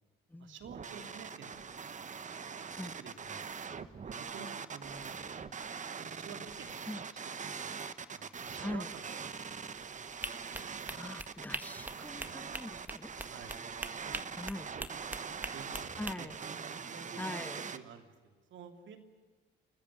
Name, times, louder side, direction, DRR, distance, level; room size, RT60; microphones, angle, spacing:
voice 1, 0.4-1.8 2.8-3.5 4.0-5.2 6.0-7.8 8.1-9.1 10.9-11.0 13.3-13.6 13.8-16.3 16.9-19.0, right 6 dB, 70° right, 6 dB, 3.2 m, -51 dB
sound 1, 0.6-17.8, right 6 dB, 40° right, 1.2 m, -43 dB
voice 2, 8.6-8.9 10.6-13.1 14.4-14.7 16.0-16.4 17.2-17.7, left 1 dB, 10° left, 15 dB, 0.9 m, -42 dB
sound 2, 10.2-16.2, right 1 dB, 10° right, 1.7 m, -42 dB
29.5 x 14.5 x 10.0 m, 1.4 s
cardioid pair, 90°, 20 cm